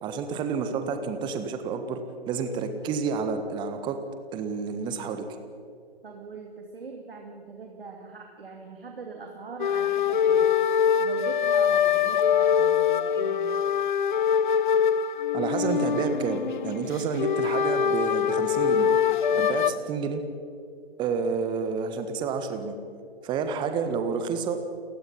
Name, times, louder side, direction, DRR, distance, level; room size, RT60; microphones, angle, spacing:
voice 1, 0.0-2.0 2.3-4.0 4.3-5.2 15.3-18.9 19.4-20.2 21.0-22.8 23.2-24.6, right 5 dB, 15° right, 8 dB, 1.4 m, -29 dB
voice 2, 6.0-10.5 11.0-13.6 19.3-19.5, right 4 dB, 65° right, 2 dB, 2.7 m, -41 dB
sound 1, 9.6-19.7, left 8 dB, 50° left, 0.7 m, -23 dB
29.0 x 16.0 x 5.7 m, 2.4 s
figure-of-eight pair, 130°, 31 cm